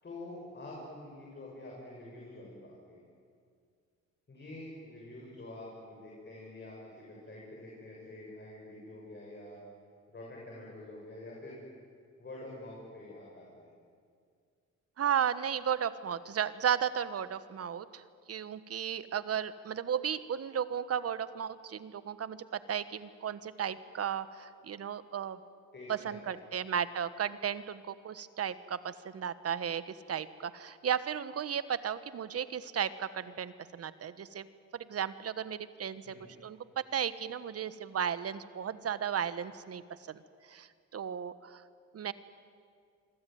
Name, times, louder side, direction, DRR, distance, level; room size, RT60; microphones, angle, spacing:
voice 1, 0.0-3.0 4.3-9.6 10.1-11.6 12.2-13.7 25.7-26.6 36.0-36.3, left 1 dB, 35° left, -3 dB, 7.7 m, -47 dB
voice 2, 15.0-18.0 18.3-25.4 25.9-34.4 34.7-36.1 36.4-39.8 40.1-40.2 40.5-41.6 41.9-42.1, right 8 dB, 50° right, 14 dB, 1.4 m, -34 dB
26.0 x 24.0 x 9.5 m, 2.2 s
cardioid pair, 90°, 30 cm